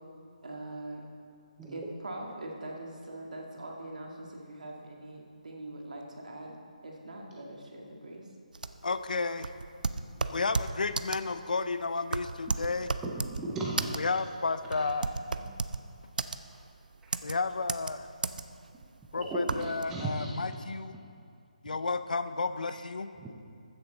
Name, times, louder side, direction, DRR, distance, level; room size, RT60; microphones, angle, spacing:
voice 1, 0.4-1.0 1.7-6.6 6.8-8.3 15.3-15.5, right 1 dB, 65° right, 0 dB, 1.9 m, -42 dB
sound 1, 8.5-19.8, right 4 dB, 90° right, 0.5 m, -34 dB
voice 2, 8.8-9.5 10.3-12.9 14.0-15.0 17.2-18.1 19.1-21.0 21.6-23.1, left 4 dB, 75° left, 12 dB, 0.5 m, -32 dB
voice 3, 13.0-13.9 14.7-14.9 17.0-17.1 19.1-20.3 21.7-21.8 23.2-23.3, right 2 dB, 5° right, -4 dB, 0.4 m, -36 dB
15.0 x 6.9 x 4.0 m, 2.4 s
hypercardioid pair, 175°, 4 cm